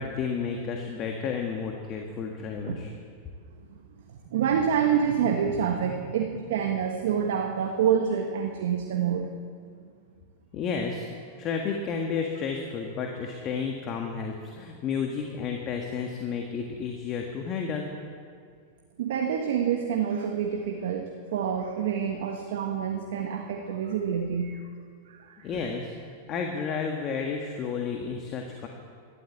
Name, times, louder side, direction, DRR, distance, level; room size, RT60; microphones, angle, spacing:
voice 1, 0.0-2.9 10.5-11.1 11.4-17.9 25.4-25.9 26.3-28.7, left 5 dB, 35° left, 2 dB, 1.7 m, -31 dB
voice 2, 4.1-9.3 19.0-24.6 25.1-25.4, right 7 dB, 75° right, 3 dB, 1.3 m, -27 dB
13.5 x 12.0 x 8.3 m, 2.1 s
hypercardioid pair, 120°, 0 cm